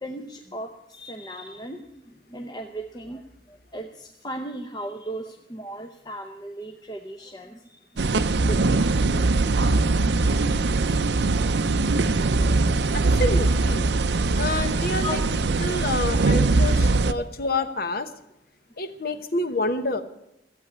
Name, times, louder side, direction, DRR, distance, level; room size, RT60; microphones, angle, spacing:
voice 1, 0.0-9.2 15.0-15.2, right 1 dB, 20° left, 3 dB, 0.7 m, -38 dB
sound 1, 8.0-17.1, right 3 dB, 60° right, 0.6 m, -21 dB
voice 2, 12.9-13.9 14.4-15.2 15.6-18.1 18.8-20.0, left 2 dB, 50° left, 10 dB, 1.0 m, -28 dB
14.5 x 8.4 x 8.6 m, 0.84 s
head